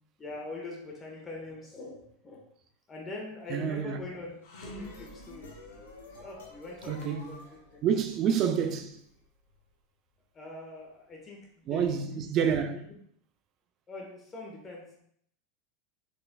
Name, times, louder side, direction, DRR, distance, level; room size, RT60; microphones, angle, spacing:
voice 1, 0.2-2.4 2.9-4.4 4.6-5.5 6.2-7.4 7.7-7.8 10.3-12.3 12.7-12.8 13.9-15.0, left 2 dB, 25° left, 1.3 m, -43 dB
voice 2, 3.5-4.0 6.9-7.4 7.8-9.0 11.7-12.8, right 7 dB, 45° right, 0.3 m, -28 dB
sound 1, 4.2-8.5, left 2 dB, 85° left, 0.8 m, -49 dB
sound 2, 4.4-9.6, equal, 65° left, 1.1 m, -53 dB
4.4 x 3.2 x 2.3 m
hypercardioid pair, 100°, 0 cm